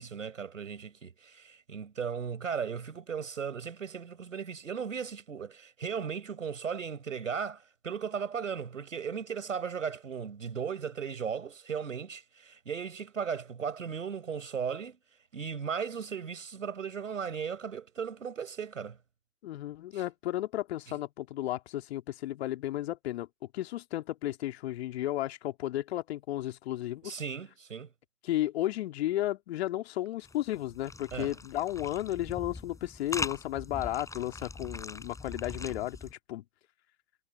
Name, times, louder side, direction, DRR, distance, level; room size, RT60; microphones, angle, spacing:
voice 1, 0.0-15.0 15.3-19.0 19.9-20.0 27.0-27.9 31.1-31.3, right 7 dB, 70° right, 5.3 m, -36 dB
voice 2, 19.4-23.3 23.5-27.2 28.2-36.4, left 14 dB, 50° left, 2.5 m, -33 dB
sound 1, 30.2-36.1, left 3 dB, 10° left, 7.4 m, -41 dB
figure-of-eight pair, 100°, 40 cm